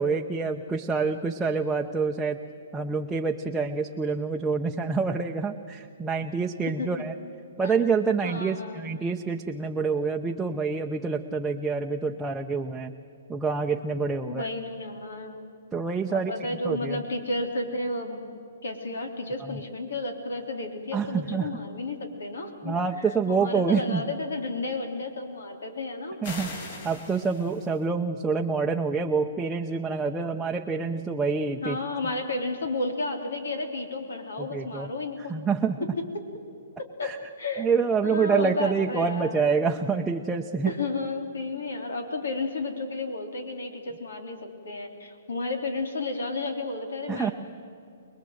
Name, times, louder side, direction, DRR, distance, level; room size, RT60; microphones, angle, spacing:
voice 1, 0.0-2.4 2.7-7.1 7.6-12.9 13.3-14.5 15.7-16.3 16.6-17.0 19.4-19.6 20.9-21.5 22.6-24.0 26.2-26.5 26.8-31.8 34.4-34.9 35.3-35.8 37.0-37.2 37.6-40.7 47.1-47.3, right 5 dB, 5° right, 0 dB, 0.8 m, -27 dB
voice 2, 8.2-8.9 14.3-15.3 16.1-18.2 18.6-26.2 31.6-35.3 35.8-36.2 36.8-37.7 38.0-39.5 40.6-47.3, left 2 dB, 85° left, 5 dB, 3.4 m, -32 dB
sound 1, 26.2-27.8, left 3 dB, 55° left, 4.7 m, -40 dB
24.0 x 21.0 x 7.9 m, 2.5 s
hypercardioid pair, 140°, 0 cm